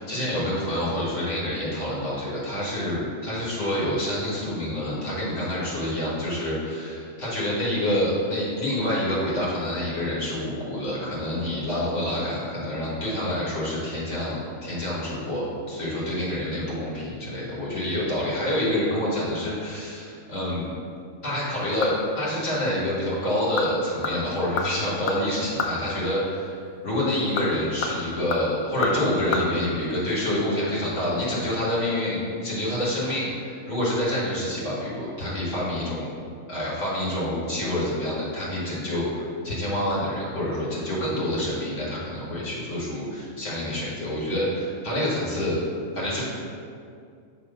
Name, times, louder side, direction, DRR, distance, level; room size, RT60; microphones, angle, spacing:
voice 1, 0.0-20.7 21.2-36.1 36.5-45.6 45.9-46.2, left 1 dB, 65° left, -7 dB, 2.1 m, -27 dB
sound 1, 21.3-22.2 22.6-22.7 23.3-23.7 24.0-25.8 27.1-29.4 29.7-29.8, left 4 dB, 90° left, 1.1 m, -30 dB
6.7 x 3.1 x 5.5 m, 2.3 s
omnidirectional pair, 1.4 m